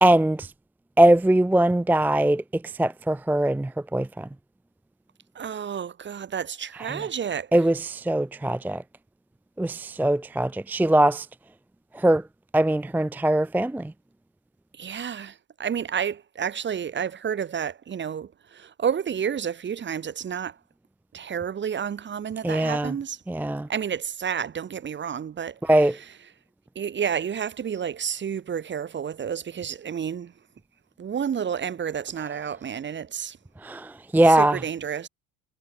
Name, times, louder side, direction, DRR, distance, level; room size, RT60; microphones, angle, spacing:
voice 1, 0.0-0.5 1.0-2.4 2.8-4.3 7.5-8.8 9.6-11.3 11.9-12.2 12.5-13.9 22.4-22.9 23.3-23.7 25.6-25.9 33.6-34.6, right 1 dB, 5° right, 0.7 m, -21 dB
voice 2, 5.3-7.5 14.7-20.6 21.1-23.2 23.7-26.0 26.7-30.3 31.0-33.4 34.3-35.1, right 8 dB, 25° right, 1.1 m, -30 dB
hypercardioid pair, 65°, 41 cm